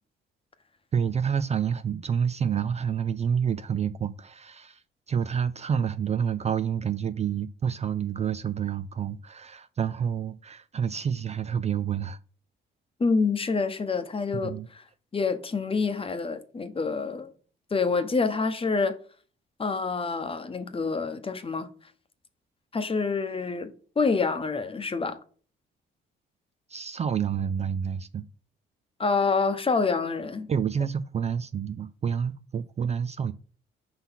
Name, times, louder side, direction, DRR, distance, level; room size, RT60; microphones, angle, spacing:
voice 1, 0.9-4.8 5.1-12.2 14.3-14.7 26.7-28.2 30.5-33.3, right 7 dB, 35° right, 0.4 m, -28 dB
voice 2, 13.0-14.8 15.1-17.3 17.7-19.0 19.6-21.7 22.7-25.2 29.0-30.5, left 4 dB, 25° left, 0.9 m, -27 dB
5.7 x 4.0 x 5.6 m
cardioid pair, 90°, 20 cm